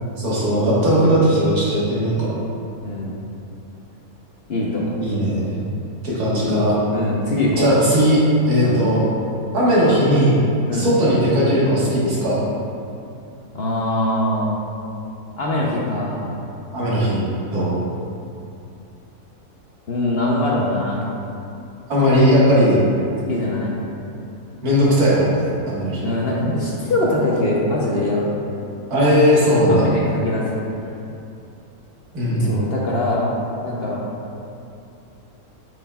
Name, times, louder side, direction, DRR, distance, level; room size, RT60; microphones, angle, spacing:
voice 1, 0.2-2.3 5.0-5.5 6.0-6.8 7.6-8.2 8.5-9.0 9.5-10.4 10.7-12.4 16.7-17.2 17.5-17.8 21.9-22.8 24.6-26.1 28.9-29.9 32.1-32.5, equal, 85° right, -7 dB, 2.0 m, -17 dB
voice 2, 2.8-3.2 4.5-5.0 6.9-7.7 8.6-8.9 10.7-10.9 13.5-14.6 15.4-16.4 19.9-21.0 23.3-23.7 26.0-28.3 29.7-30.5 32.4-33.3 33.6-34.0, left 1 dB, 50° left, -4 dB, 0.8 m, -22 dB
7.6 x 5.9 x 2.3 m, 2.7 s
omnidirectional pair, 1.6 m